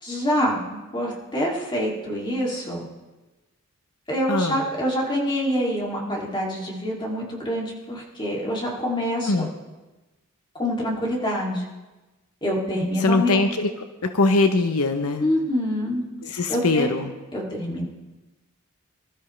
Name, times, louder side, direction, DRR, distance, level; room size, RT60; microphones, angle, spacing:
voice 1, 0.0-2.9 4.1-9.3 10.6-11.6 12.4-13.4 15.2-16.9 17.3-17.9, equal, 20° left, -3 dB, 2.7 m, -26 dB
voice 2, 4.3-4.6 9.3-9.5 13.0-13.7 14.0-15.2 16.2-17.1, left 3 dB, 75° left, 7 dB, 0.8 m, -21 dB
24.5 x 13.0 x 3.3 m, 1.1 s
head